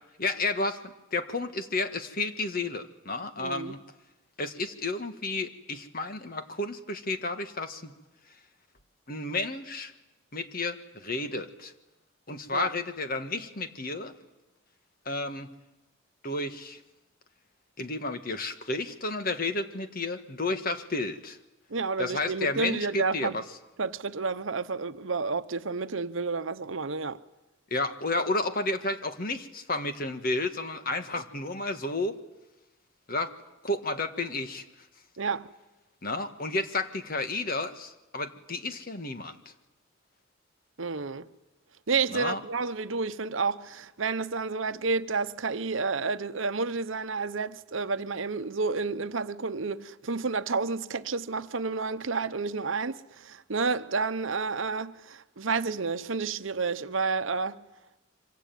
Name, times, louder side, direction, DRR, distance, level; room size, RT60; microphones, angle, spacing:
voice 1, 0.2-3.8 4.4-7.9 9.1-9.9 10.3-11.7 12.3-14.1 15.0-15.5 16.2-16.8 17.8-21.4 22.0-23.4 27.7-32.2 33.1-33.3 33.6-34.6 36.0-39.4 42.1-42.4, left 2 dB, 45° left, 1.7 m, -31 dB
voice 2, 3.4-3.8 12.5-12.7 21.7-23.4 23.8-27.2 35.2-35.5 40.8-41.3 41.9-57.6, right 4 dB, 70° right, 0.9 m, -30 dB
25.0 x 23.0 x 9.3 m
head